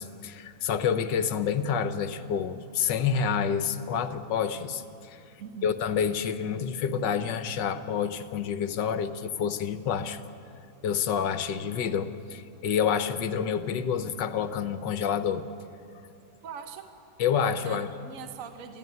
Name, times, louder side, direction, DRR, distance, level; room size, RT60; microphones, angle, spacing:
voice 1, 0.0-5.2 5.6-10.2 10.8-15.4 17.2-17.9, left 7 dB, 75° left, 11 dB, 1.5 m, -28 dB
voice 2, 5.4-5.7 16.4-16.9 17.6-18.8, right 7 dB, 50° right, 7 dB, 1.5 m, -41 dB
23.5 x 14.5 x 9.5 m, 2.7 s
omnidirectional pair, 2.0 m